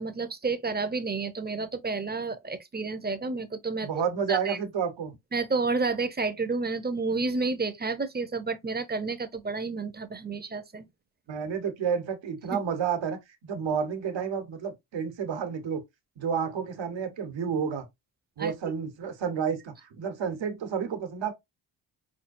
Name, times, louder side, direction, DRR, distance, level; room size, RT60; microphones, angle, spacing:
voice 1, 0.0-3.9 4.3-4.6 5.3-10.9 18.4-18.5, right 3 dB, 20° right, 0.7 m, -30 dB
voice 2, 3.8-5.1 11.3-15.8 16.2-17.9 18.4-21.3, right 7 dB, 65° right, 1.3 m, -30 dB
5.8 x 2.2 x 2.6 m
cardioid pair, 70°, 47 cm